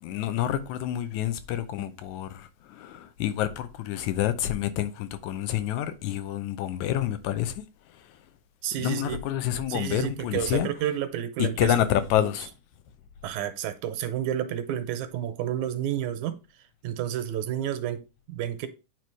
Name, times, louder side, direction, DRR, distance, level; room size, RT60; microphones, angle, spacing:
voice 1, 0.0-7.6 8.8-10.7 11.4-12.5, left 11 dB, 80° left, 2.1 m, -28 dB
voice 2, 8.6-9.2 9.7-11.7 12.2-12.3 13.2-16.4 16.8-18.7, right 10 dB, 85° right, 2.1 m, -30 dB
9.2 x 3.1 x 4.6 m
omnidirectional pair, 3.3 m